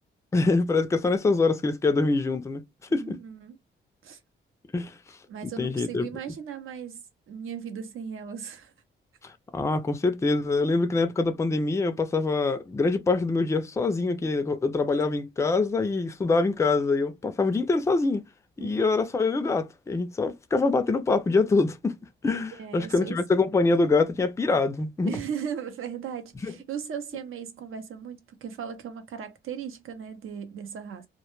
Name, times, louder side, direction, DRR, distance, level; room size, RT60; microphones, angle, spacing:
voice 1, 0.3-2.6 2.9-3.2 4.7-5.0 5.4-6.1 9.2-18.2 18.6-22.0 22.2-25.1 26.4-26.5, left 3 dB, 15° left, 0.3 m, -24 dB
voice 2, 2.9-3.6 4.0-4.2 5.3-8.7 18.6-18.8 22.6-23.2 25.0-31.1, right 7 dB, 80° right, 0.6 m, -37 dB
2.1 x 2.1 x 2.9 m
cardioid pair, 115°, 21 cm